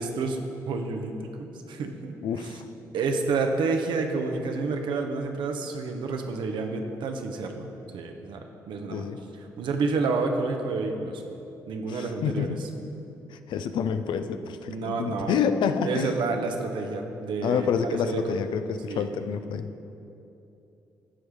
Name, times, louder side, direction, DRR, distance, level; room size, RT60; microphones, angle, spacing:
voice 1, 0.0-2.2 2.4-2.5 2.9-9.1 9.6-11.2 11.7-12.5 14.7-15.4 15.8-18.2 18.9-19.1, right 4 dB, 65° right, 4 dB, 0.9 m, -29 dB
voice 2, 2.2-2.6 8.9-9.2 11.9-12.6 13.3-16.1 17.4-19.7, left 7 dB, 65° left, 9 dB, 0.5 m, -28 dB
14.0 x 4.7 x 5.0 m, 2.9 s
hypercardioid pair, 45°, 9 cm